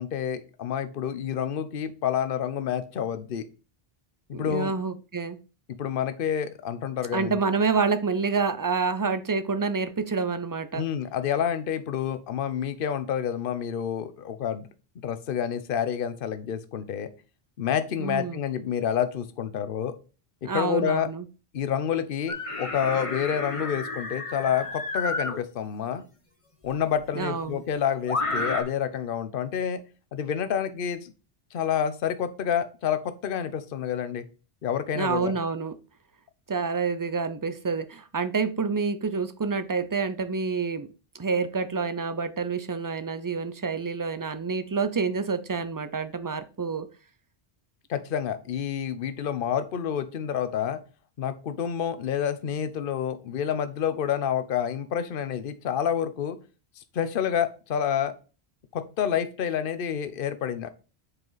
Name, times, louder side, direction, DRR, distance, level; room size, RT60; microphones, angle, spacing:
voice 1, 0.0-3.4 4.3-4.7 5.8-7.4 10.7-14.7 15.0-17.1 17.6-19.9 20.4-21.1 21.5-26.0 26.6-29.8 30.1-31.1 31.5-34.2 34.6-35.3 47.9-50.8 51.2-56.4 56.9-58.1 58.7-60.7, left 8 dB, 60° left, 11 dB, 0.9 m, -28 dB
voice 2, 4.3-5.4 7.1-10.8 18.0-18.4 20.4-21.2 27.2-27.6 35.0-35.7 36.5-40.9 41.2-46.9, right 5 dB, 30° right, 12 dB, 0.4 m, -28 dB
sound 1, 22.3-25.4 26.7-26.8 28.1-28.6, left 2 dB, 30° left, 1.2 m, -31 dB
7.6 x 4.8 x 4.0 m, 0.34 s
omnidirectional pair, 1.1 m